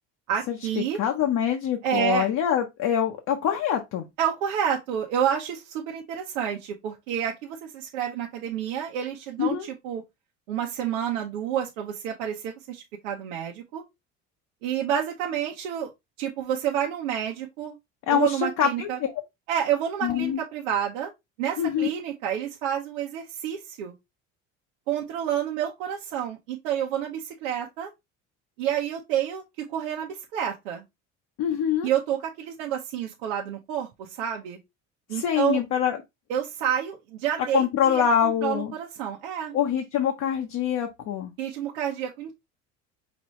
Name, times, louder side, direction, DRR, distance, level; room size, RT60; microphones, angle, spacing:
voice 1, 0.3-1.0 1.8-2.3 4.2-10.0 10.5-13.8 14.6-15.9 16.2-17.8 18.1-19.0 19.5-21.1 21.4-23.9 24.9-27.9 28.6-29.4 29.7-30.8 31.8-34.6 35.1-35.6 36.3-39.5 41.4-42.3, right 9 dB, 80° right, 0.9 m, -29 dB
voice 2, 1.0-4.1 9.4-9.7 18.1-19.1 20.0-20.4 21.6-21.9 31.4-31.9 35.1-36.0 37.5-38.7 39.5-41.3, left 9 dB, 55° left, 1.0 m, -25 dB
5.2 x 2.7 x 3.1 m
hypercardioid pair, 75°, 36 cm